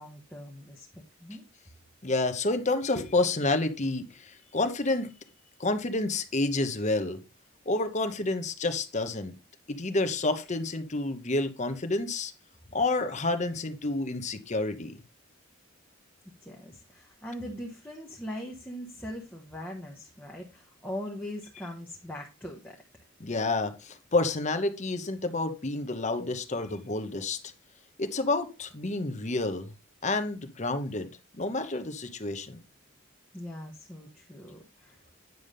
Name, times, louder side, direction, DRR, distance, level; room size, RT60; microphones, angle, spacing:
voice 1, 0.0-1.5 16.4-22.8 33.3-35.0, equal, 10° left, 1.1 m, -41 dB
voice 2, 2.0-5.1 5.6-7.2 7.7-9.3 9.7-12.3 12.7-15.0 23.2-27.5 28.0-29.7 30.0-32.6, left 2 dB, 35° left, 1.0 m, -29 dB
9.4 x 3.5 x 6.6 m
head